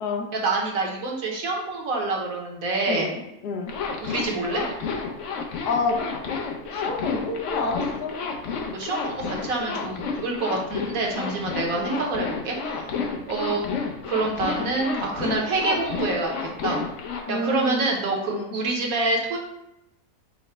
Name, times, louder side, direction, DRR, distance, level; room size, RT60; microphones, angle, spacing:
voice 1, 0.4-3.1 4.0-4.6 8.7-12.9 13.3-13.7 14.1-16.4 16.6-16.8 17.3-19.4, right 3 dB, 65° right, 0 dB, 1.1 m, -26 dB
voice 2, 2.9-3.7 5.7-6.0 6.7-8.2 11.7-12.0 12.9-13.2 17.3-17.9 18.3-18.5, left 3 dB, 80° left, 3 dB, 1.2 m, -28 dB
Zipper (clothing), 3.7-17.2, left 5 dB, 65° left, 0.8 m, -31 dB
5.7 x 2.0 x 4.2 m, 0.86 s
omnidirectional pair, 1.8 m